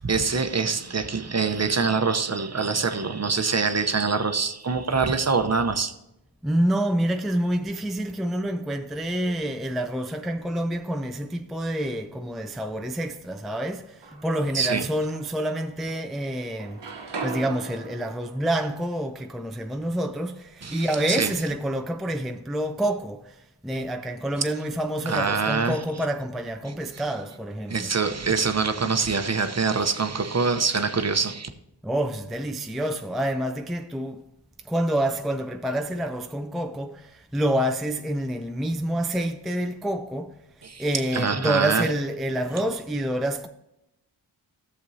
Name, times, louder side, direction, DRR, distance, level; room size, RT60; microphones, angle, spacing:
voice 1, 0.0-5.9 14.5-14.9 20.6-21.3 24.4-24.5 25.1-25.8 26.6-26.7 27.7-31.5 40.6-40.9 41.1-41.9, right 4 dB, 35° right, 0.8 m, -24 dB
voice 2, 6.4-16.8 17.2-23.4 23.6-27.9 31.8-34.2 34.6-40.4 40.8-43.5, right 1 dB, ahead, 0.4 m, -27 dB
sound 1, 13.7-14.6 15.1-16.2 16.4-20.4, right 4 dB, 70° right, 1.1 m, -40 dB
13.5 x 7.0 x 2.7 m
cardioid pair, 55°, 45 cm